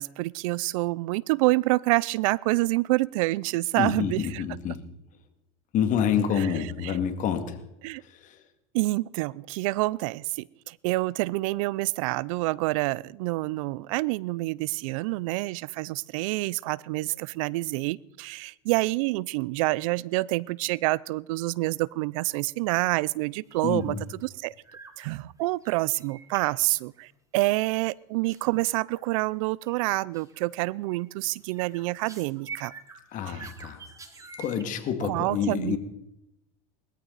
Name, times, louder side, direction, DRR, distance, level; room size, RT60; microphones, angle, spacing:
voice 1, 0.0-4.2 7.8-8.0 8.7-24.0 24.4-24.5 25.0-32.7 35.0-35.8, right 21 dB, 75° right, 24 dB, 0.5 m, -27 dB
voice 2, 3.8-4.9 5.7-7.6 8.0-8.4 23.6-24.0 33.1-33.8 34.4-35.8, left 8 dB, 45° left, 7 dB, 2.2 m, -28 dB
sound 1, 23.5-23.9 24.1-24.4 24.6-25.1 25.4-27.1 28.3-28.5 28.9-29.3 29.7-29.8 30.1-30.5 30.9-34.6, right 4 dB, 20° right, 2.0 m, -47 dB
20.0 x 14.0 x 4.0 m, 0.84 s
supercardioid pair, 110°, 17 cm